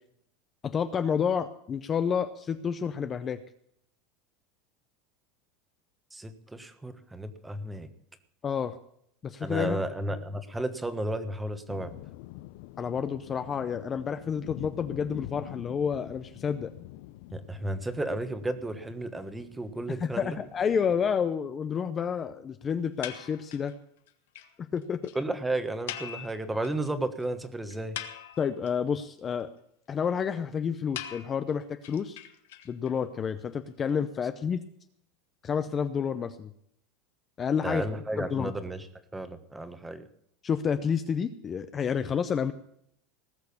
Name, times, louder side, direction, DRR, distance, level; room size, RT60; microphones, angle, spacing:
voice 1, 0.6-3.4 8.4-8.8 9.2-9.8 12.8-16.7 19.9-23.7 24.7-25.1 28.4-29.5 29.9-32.2 32.7-34.6 35.4-36.5 37.4-37.8 38.2-38.5 40.4-42.5, left 7 dB, 20° left, 10 dB, 0.7 m, -29 dB
voice 2, 6.1-7.9 9.4-11.9 17.3-20.4 25.1-28.0 37.6-38.9 39.1-40.1, right 1 dB, 5° right, 11 dB, 1.3 m, -33 dB
sound 1, 11.7-21.3, left 17 dB, 65° left, 0.7 m, -46 dB
sound 2, 23.0-23.7 24.1-24.2 24.4-24.5 24.8-24.9 25.0-25.2 25.9-26.9 27.2-27.3 27.7-28.7 31.0-32.9, left 11 dB, 85° left, 1.6 m, -41 dB
19.0 x 6.5 x 8.4 m, 0.71 s
supercardioid pair, 155°, 0 cm